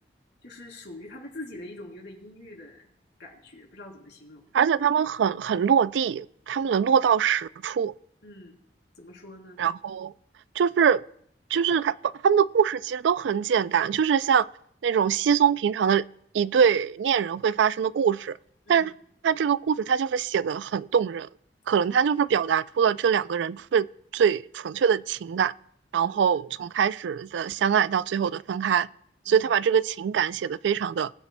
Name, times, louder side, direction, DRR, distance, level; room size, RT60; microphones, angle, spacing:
voice 1, 0.4-2.9 3.2-4.5 8.2-8.5 9.0-9.6 18.6-18.9 21.7-21.9 26.0-26.4 29.3-29.5, left 1 dB, 75° left, 3.1 m, -44 dB
voice 2, 4.5-7.9 9.6-10.1 10.6-11.0 11.5-14.5 14.8-16.0 16.3-18.4 18.7-18.9 19.2-21.3 21.7-23.9 24.1-25.5 25.9-28.9 29.3-31.1, right 7 dB, 85° right, 0.3 m, -23 dB
20.5 x 9.7 x 2.2 m
head